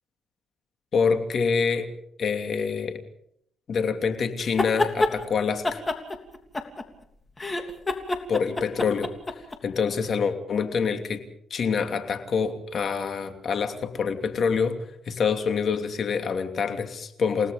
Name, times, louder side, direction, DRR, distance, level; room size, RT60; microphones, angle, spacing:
voice 1, 0.9-1.9 2.2-3.0 3.7-5.8 8.3-9.1 9.6-11.2 11.5-14.8 15.1-17.5, left 5 dB, 55° left, 7 dB, 2.9 m, -26 dB
sound 1, 4.4-5.1 5.6-7.0 7.4-9.6, left 2 dB, 25° left, 3.1 m, -26 dB
29.5 x 18.0 x 5.4 m, 0.71 s
cardioid pair, 90°, 0 cm